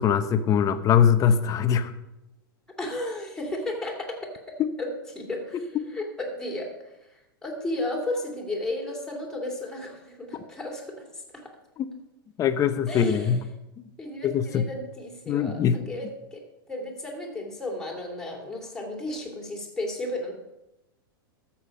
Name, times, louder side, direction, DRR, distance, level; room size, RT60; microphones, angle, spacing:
voice 1, 0.0-1.9 4.6-4.7 5.7-5.9 11.8-11.9 12.4-13.4 14.2-14.7 15.3-15.8, left 8 dB, 30° left, 10 dB, 0.8 m, -22 dB
voice 2, 2.8-4.2 4.8-11.5 12.9-13.4 14.0-20.3, left 1 dB, 5° left, -1 dB, 2.9 m, -34 dB
13.0 x 7.3 x 5.4 m, 0.95 s
hypercardioid pair, 130°, 12 cm